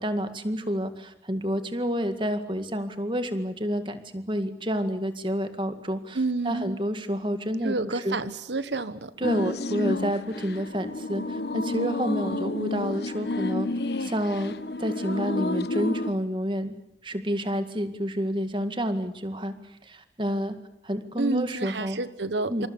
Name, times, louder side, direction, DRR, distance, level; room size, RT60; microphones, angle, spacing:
voice 1, 0.0-6.2 6.4-8.2 9.2-13.7 14.0-16.7 17.0-19.5 19.8-20.6 20.8-22.0 22.5-22.7, equal, 30° right, 9 dB, 2.0 m, -29 dB
voice 2, 6.1-6.8 7.6-9.5 21.2-22.7, right 3 dB, 85° right, 13 dB, 1.4 m, -30 dB
sound 1, 9.2-16.1, left 2 dB, 70° left, 1.3 m, -30 dB
27.5 x 27.0 x 7.2 m, 0.74 s
head